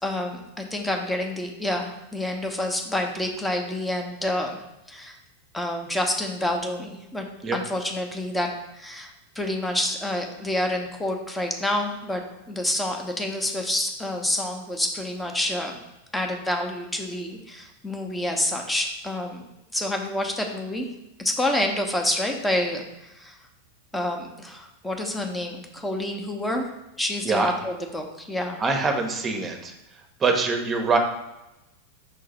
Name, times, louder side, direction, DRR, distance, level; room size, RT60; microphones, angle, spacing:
voice 1, 0.0-4.6 4.9-5.2 5.5-7.3 7.5-8.5 8.7-15.8 16.1-19.4 19.7-20.9 21.2-23.4 23.9-26.7 27.0-28.6, left 1 dB, 5° left, 3 dB, 1.1 m, -28 dB
voice 2, 28.6-29.7 30.2-31.0, right 4 dB, 20° right, 4 dB, 1.0 m, -23 dB
5.7 x 3.8 x 5.2 m, 0.94 s
figure-of-eight pair, 90°, 0 cm